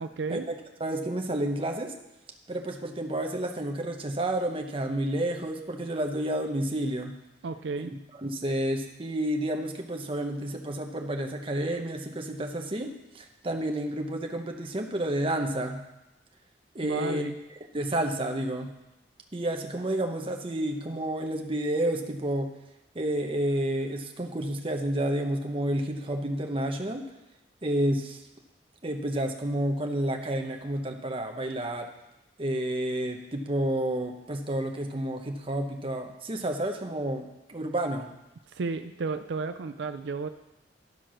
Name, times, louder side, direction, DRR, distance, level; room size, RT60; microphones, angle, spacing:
voice 1, 0.0-0.5 7.4-7.9 16.8-17.4 38.5-40.3, right 4 dB, 80° right, 9 dB, 0.4 m, -33 dB
voice 2, 0.8-1.9 2.5-7.1 8.2-15.8 16.7-17.3 17.7-18.7 19.3-22.5 22.9-27.1 27.6-28.2 28.8-31.9 32.4-38.1, right 1 dB, 30° right, 3 dB, 0.9 m, -30 dB
12.0 x 4.5 x 6.3 m, 0.94 s
head